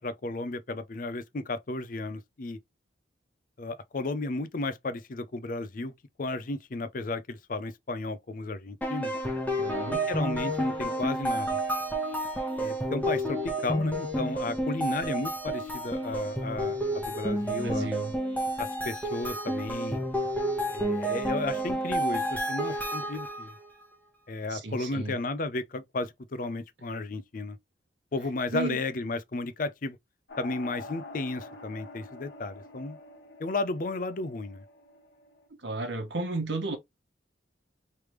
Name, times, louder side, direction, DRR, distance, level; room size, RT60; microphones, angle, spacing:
voice 1, 0.0-2.6 3.6-5.9 6.2-9.1 10.1-11.6 12.6-17.9 18.6-20.0 20.7-23.5 24.3-27.6 28.1-30.0 30.4-33.0 33.4-34.6, left 2 dB, 45° left, 0.5 m, -33 dB
sound 1, 8.8-23.5, right 1 dB, 10° left, 1.0 m, -30 dB
voice 2, 9.6-10.1 17.4-18.1 24.5-25.1 28.5-28.8 35.6-36.8, right 2 dB, 75° right, 1.1 m, -33 dB
sound 2, 30.3-35.5, left 2 dB, 65° left, 1.2 m, -47 dB
3.3 x 3.3 x 3.0 m
head